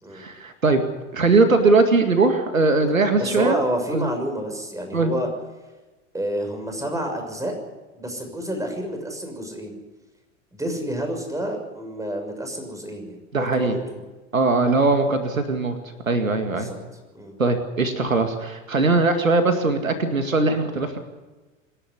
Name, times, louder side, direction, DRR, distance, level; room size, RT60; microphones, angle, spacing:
voice 1, 0.1-0.8 1.1-3.6 3.9-4.1 4.9-5.1 13.3-13.8 14.3-15.8 16.1-16.7 17.4-21.0, right 3 dB, 90° right, 7 dB, 2.2 m, -20 dB
voice 2, 3.2-5.3 6.1-7.5 7.9-9.8 10.5-14.0 16.5-16.7 17.1-17.3, right 1 dB, 10° right, 4 dB, 6.4 m, -29 dB
26.0 x 11.5 x 9.8 m, 1.2 s
figure-of-eight pair, 85°, 40 cm